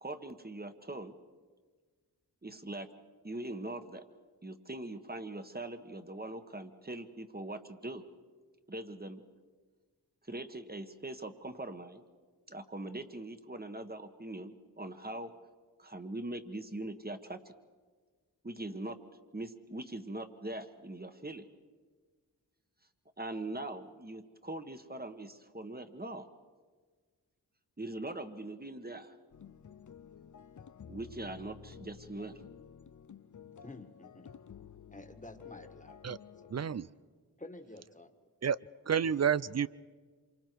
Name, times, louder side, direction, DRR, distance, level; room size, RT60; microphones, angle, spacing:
voice 1, 0.0-1.1 2.4-2.9 3.2-4.0 4.4-8.0 8.7-9.2 10.3-12.0 12.5-15.3 15.8-17.5 18.4-19.0 19.3-21.4 23.2-26.3 27.8-29.1 30.9-32.4, right 2 dB, 25° right, 8 dB, 1.4 m, -42 dB
sound 1, 29.3-36.8, left 7 dB, 45° left, 0.7 m, -52 dB
voice 2, 33.6-34.3 34.9-36.0 36.4-36.5 37.4-38.1, left 2 dB, 20° left, 7 dB, 1.8 m, -50 dB
voice 3, 36.5-36.9 38.4-38.6 38.9-39.7, right 7 dB, 40° right, 19 dB, 0.5 m, -29 dB
27.0 x 24.5 x 4.7 m, 1.5 s
cardioid pair, 40°, 40 cm